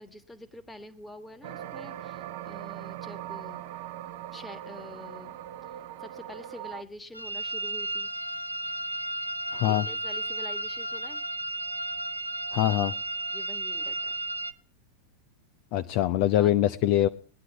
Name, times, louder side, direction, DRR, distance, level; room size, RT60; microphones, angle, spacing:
voice 1, 0.0-3.7 4.3-5.3 5.6-8.1 9.7-11.2 13.3-14.1 16.3-16.5, left 1 dB, 10° left, 10 dB, 1.5 m, -46 dB
sound 1, 1.4-6.8, right 12 dB, 50° right, 0.8 m, -40 dB
sound 2, 7.1-14.5, right 2 dB, 90° right, 0.7 m, -33 dB
voice 2, 9.5-9.8 12.5-12.9 15.7-17.1, left 13 dB, 45° left, 11 dB, 0.6 m, -23 dB
19.5 x 11.0 x 3.4 m, 0.40 s
figure-of-eight pair, 90°, 0 cm